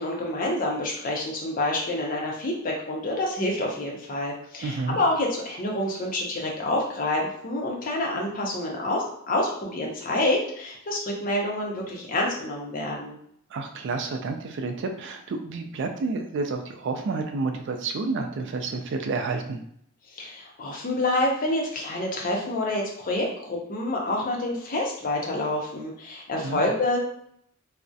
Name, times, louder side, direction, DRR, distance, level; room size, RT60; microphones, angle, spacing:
voice 1, 0.0-13.2 20.1-27.0, left 1 dB, 40° left, -1 dB, 0.6 m, -27 dB
voice 2, 4.6-5.0 13.5-19.6 26.4-26.7, right 3 dB, 55° right, 5 dB, 0.3 m, -30 dB
2.3 x 2.0 x 2.6 m, 0.69 s
head